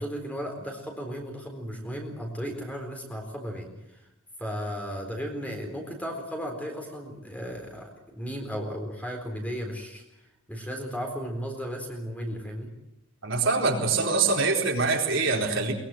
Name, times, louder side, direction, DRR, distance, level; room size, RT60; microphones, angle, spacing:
voice 1, 0.0-4.1 4.4-10.0 10.5-12.7, equal, 5° left, 2 dB, 4.0 m, -35 dB
voice 2, 13.2-15.7, right 4 dB, 60° right, 0 dB, 4.4 m, -24 dB
22.5 x 21.5 x 7.6 m, 0.88 s
head